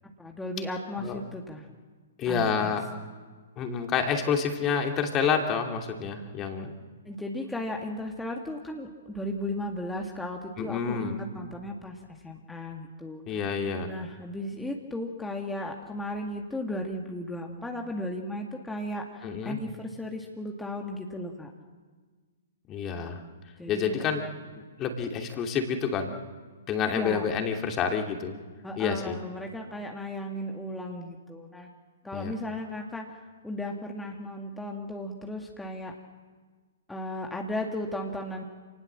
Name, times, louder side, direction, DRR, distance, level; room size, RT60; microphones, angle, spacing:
voice 1, 0.0-1.7 2.3-2.7 7.0-13.2 13.9-21.5 23.6-24.1 26.9-27.3 28.6-31.7 32.0-35.9 36.9-38.4, left 1 dB, 5° left, 1 dB, 2.1 m, -35 dB
voice 2, 2.2-2.8 3.6-6.7 10.6-11.2 13.3-13.9 19.2-19.6 22.7-23.2 23.7-24.2 24.8-26.1 26.7-28.3 28.8-29.2 32.1-32.3, left 6 dB, 25° left, 4 dB, 2.8 m, -28 dB
29.0 x 19.5 x 7.6 m, 1.4 s
figure-of-eight pair, 120°, 0 cm